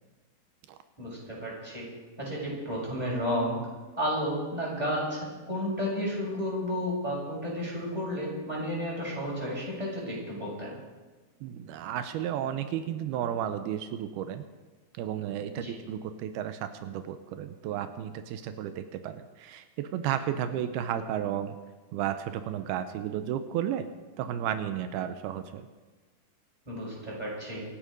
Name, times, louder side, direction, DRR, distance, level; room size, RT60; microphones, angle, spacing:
voice 1, 1.0-1.9 2.2-3.6 4.0-10.7 15.5-15.7 26.7-27.6, equal, 10° right, -4 dB, 6.7 m, -32 dB
voice 2, 11.4-14.5 14.9-21.6 21.9-23.9 24.2-25.7, right 10 dB, 85° right, 9 dB, 2.7 m, -33 dB
26.0 x 9.8 x 5.3 m, 1.3 s
omnidirectional pair, 4.4 m